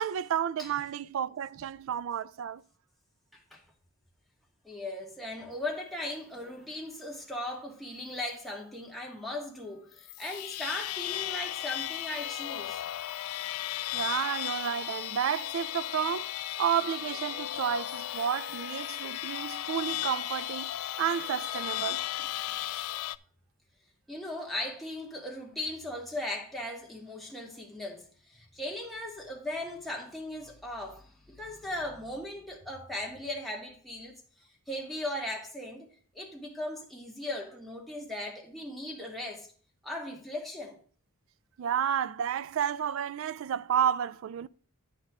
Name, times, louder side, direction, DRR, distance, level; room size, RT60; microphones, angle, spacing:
voice 1, 0.0-2.6 13.9-16.3 16.6-20.7 21.0-22.0 41.6-44.5, right 9 dB, 65° right, 0.3 m, -31 dB
voice 2, 4.6-12.8 24.1-34.2 34.7-39.5 39.8-40.8, left 1 dB, ahead, 1.4 m, -38 dB
sound 1, 9.9-23.2, left 14 dB, 85° left, 0.3 m, -35 dB
9.1 x 4.2 x 6.1 m
head